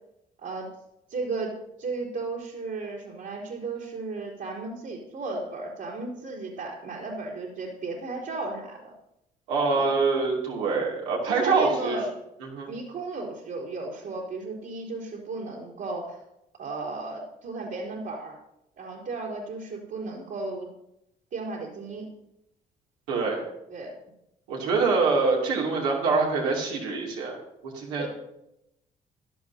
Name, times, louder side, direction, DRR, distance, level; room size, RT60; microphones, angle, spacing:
voice 1, 1.1-8.9 9.7-9.9 11.3-12.1 12.6-16.2 16.6-18.4 18.8-20.7 21.3-22.1 23.7-23.9 28.0-28.1, right 3 dB, 65° right, -7 dB, 4.1 m, -34 dB
voice 2, 9.5-12.0 12.5-12.7 23.1-23.4 24.5-28.1, right 4 dB, 85° right, -2 dB, 2.9 m, -25 dB
16.5 x 12.0 x 2.9 m, 0.84 s
hypercardioid pair, 60°, 20 cm